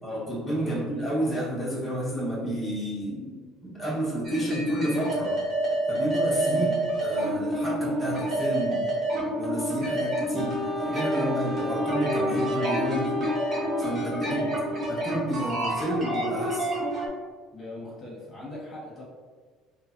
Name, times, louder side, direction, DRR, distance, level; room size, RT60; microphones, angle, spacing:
voice 1, 0.0-3.3 3.6-5.3 5.9-8.8 9.4-10.5 10.8-13.2 13.8-14.4 14.9-16.7, right 1 dB, 5° left, -9 dB, 1.0 m, -31 dB
sound 1, 4.2-17.1, right 1 dB, 40° right, 1.0 m, -28 dB
Wind instrument woodwind instrument, 10.3-15.0, left 1 dB, 20° right, 0.3 m, -33 dB
voice 2, 14.2-14.8 17.5-19.0, left 1 dB, 35° left, -6 dB, 1.0 m, -41 dB
3.1 x 2.0 x 2.4 m, 1.4 s
cardioid pair, 110°, 0 cm